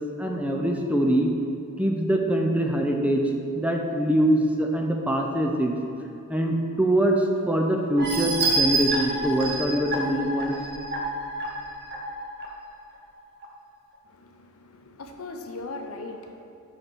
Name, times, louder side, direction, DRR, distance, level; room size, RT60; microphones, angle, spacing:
voice 1, 0.2-1.3 1.8-3.2 3.6-5.7 6.3-10.5, right 1 dB, 5° right, 1 dB, 0.5 m, -23 dB
sound 1, 8.0-12.5 12.9-13.0 13.4-13.5, right 2 dB, 50° right, 1.0 m, -28 dB
voice 2, 14.1-16.4, left 2 dB, 70° left, 4 dB, 0.7 m, -39 dB
5.8 x 5.6 x 6.1 m, 2.8 s
head